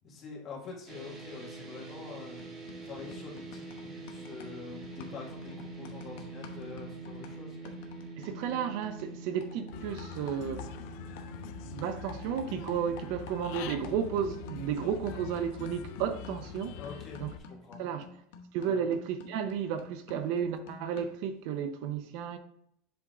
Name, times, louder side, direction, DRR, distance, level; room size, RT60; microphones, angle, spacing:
voice 1, 0.0-2.4 2.8-7.6 16.8-17.8 18.6-18.8, left 4 dB, 30° left, 2.1 m, -45 dB
sound 1, 0.9-17.2, right 3 dB, 30° right, 1.5 m, -46 dB
sound 2, 1.9-2.1 2.4-11.5 11.8-21.3, left 4 dB, 75° left, 1.0 m, -50 dB
voice 2, 8.2-10.7 11.6-16.8 17.2-17.3 17.8-18.1 18.5-22.4, right 8 dB, 60° right, 0.6 m, -33 dB
Human voice / Bird, 9.7-17.4, left 10 dB, 60° left, 0.5 m, -44 dB
7.8 x 3.6 x 3.8 m
supercardioid pair, 155°, 0 cm